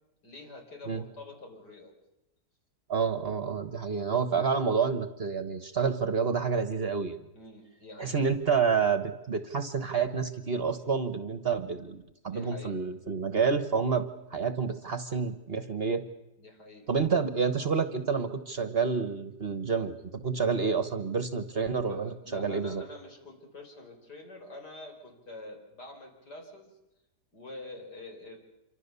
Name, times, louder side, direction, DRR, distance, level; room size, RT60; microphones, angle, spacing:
voice 1, 0.2-1.9 7.3-8.3 12.2-12.8 16.4-16.9 21.9-26.7 27.3-28.4, left 2 dB, 75° left, 2 dB, 5.0 m, -46 dB
voice 2, 2.9-7.2 8.0-16.0 16.9-20.0 20.2-22.8, right 5 dB, 40° right, 10 dB, 1.2 m, -29 dB
26.5 x 24.0 x 6.9 m, 0.96 s
omnidirectional pair, 1.8 m